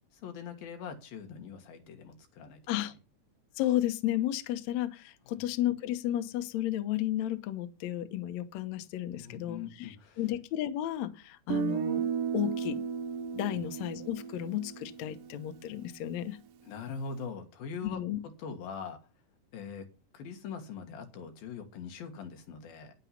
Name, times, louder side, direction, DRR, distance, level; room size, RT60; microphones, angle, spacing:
voice 1, 0.2-2.6 5.3-5.4 9.1-10.2 13.5-13.6 16.6-18.0 18.4-19.0 19.5-19.9 20.1-22.9, left 6 dB, 85° left, 6 dB, 3.5 m, -42 dB
voice 2, 3.6-12.1 12.3-12.8 13.3-16.4 17.8-18.2, left 13 dB, 65° left, 10 dB, 1.9 m, -33 dB
Guitar, 11.5-15.4, right 7 dB, 75° right, 2.8 m, -34 dB
9.8 x 9.0 x 5.9 m, 0.31 s
omnidirectional pair, 4.1 m